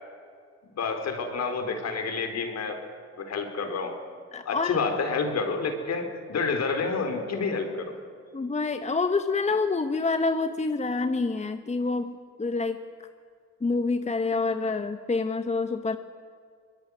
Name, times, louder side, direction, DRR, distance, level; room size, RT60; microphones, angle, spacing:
voice 1, 0.8-2.8 3.2-4.0 4.5-8.0, left 4 dB, 60° left, 5 dB, 4.3 m, -29 dB
voice 2, 4.3-4.8 8.3-12.8 13.6-16.0, left 3 dB, 20° left, 8 dB, 1.2 m, -27 dB
24.0 x 21.0 x 9.8 m, 2.1 s
cardioid pair, 90°, 30 cm